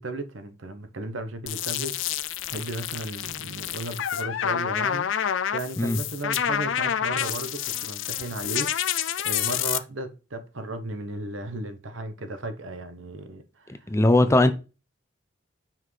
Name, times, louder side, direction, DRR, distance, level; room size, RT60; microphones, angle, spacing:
voice 1, 0.0-13.9 14.3-14.5, right 1 dB, 80° right, 0.9 m, -35 dB
sound 1, 1.5-9.8, left 10 dB, 75° left, 0.4 m, -28 dB
voice 2, 13.9-14.5, left 2 dB, 15° left, 0.4 m, -19 dB
7.2 x 5.7 x 3.2 m
head